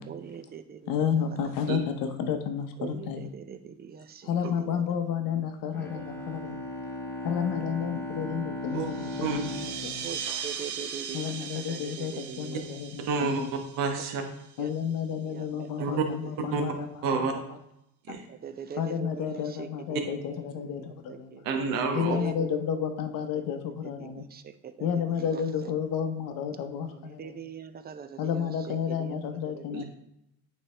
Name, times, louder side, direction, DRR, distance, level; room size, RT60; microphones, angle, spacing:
voice 1, 0.1-1.1 2.8-4.3 4.6-4.8 5.9-6.0 10.0-12.6 14.6-14.7 15.2-15.7 18.3-20.1 21.1-21.4 22.1-22.5 24.0-25.0 25.3-25.7 26.9-29.2 29.5-29.8, right 6 dB, 30° right, 10 dB, 0.4 m, -42 dB
voice 2, 0.9-3.3 4.2-6.6 7.2-9.5 9.8-10.0 11.1-13.1 13.4-13.5 14.6-16.9 17.1-17.2 18.1-18.2 18.7-21.4 21.9-24.2 24.8-27.4 28.2-29.8, left 7 dB, 75° left, 7 dB, 0.8 m, -31 dB
Bowed string instrument, 5.7-11.3, left 1 dB, 5° left, 1.0 m, -37 dB
sound 1, 8.8-14.9, right 7 dB, 55° right, 0.9 m, -39 dB
voice 3, 13.1-13.4 13.8-14.2 15.8-16.0 16.5-16.6 17.0-17.3 18.1-18.3 21.4-22.1 29.7-29.8, right 4 dB, 80° right, 3 dB, 1.2 m, -28 dB
8.5 x 3.4 x 3.3 m, 0.82 s
cardioid pair, 120°, 33 cm